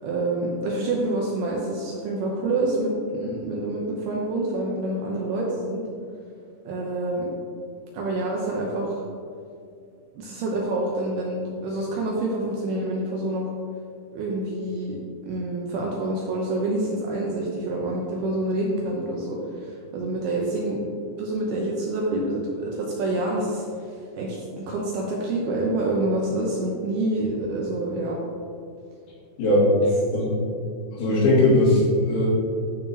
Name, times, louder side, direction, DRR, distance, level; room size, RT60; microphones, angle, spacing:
voice 1, 0.0-5.8 6.7-7.3 7.9-9.0 10.2-13.5 14.1-15.0 15.2-20.8 21.2-28.2, right 2 dB, 80° right, -2 dB, 2.3 m, -27 dB
voice 2, 29.4-29.7 30.1-30.3 30.9-32.3, left 1 dB, 75° left, -7 dB, 4.6 m, -19 dB
13.5 x 5.9 x 2.8 m, 2.3 s
omnidirectional pair, 5.4 m